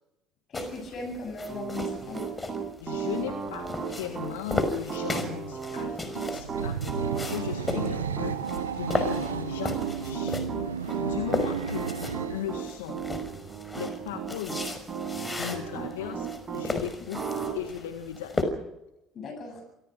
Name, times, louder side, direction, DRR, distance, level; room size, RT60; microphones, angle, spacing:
voice 1, 0.5-2.2 19.1-19.6, left 2 dB, 45° left, 5 dB, 8.0 m, -37 dB
sound 1, 0.5-18.4, left 2 dB, 15° left, 5.6 m, -36 dB
Piano, 1.5-16.7 17.1-17.5, right 6 dB, 35° right, 6.5 m, -35 dB
voice 2, 2.8-9.8 10.0-10.4 11.0-11.9 12.3-13.0 13.8-14.6 15.4-17.2 17.5-18.5, left 11 dB, 75° left, 6 dB, 1.8 m, -37 dB
sound 2, 6.2-12.5, right 7 dB, 80° right, 1.0 m, -33 dB
27.0 x 18.0 x 6.4 m, 0.88 s
figure-of-eight pair, 60°, 0 cm